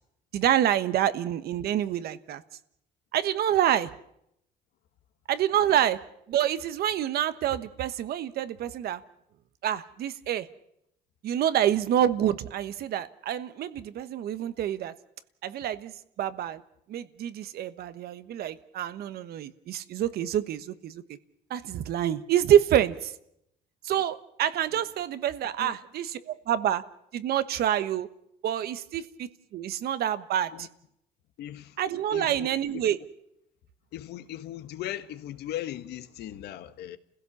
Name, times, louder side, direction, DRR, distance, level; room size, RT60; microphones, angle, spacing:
voice 1, 0.3-2.4 3.1-3.9 5.3-6.0 6.3-9.0 9.6-10.5 11.2-14.9 15.4-15.9 16.2-16.6 16.9-21.0 21.5-23.1 23.8-26.8 27.1-28.1 28.4-30.7 31.8-33.0, right 10 dB, 65° right, 1.3 m, -27 dB
voice 2, 31.4-31.8 32.1-32.9 33.9-37.0, left 12 dB, 75° left, 1.4 m, -38 dB
30.0 x 16.0 x 7.2 m
cardioid pair, 110°, 17 cm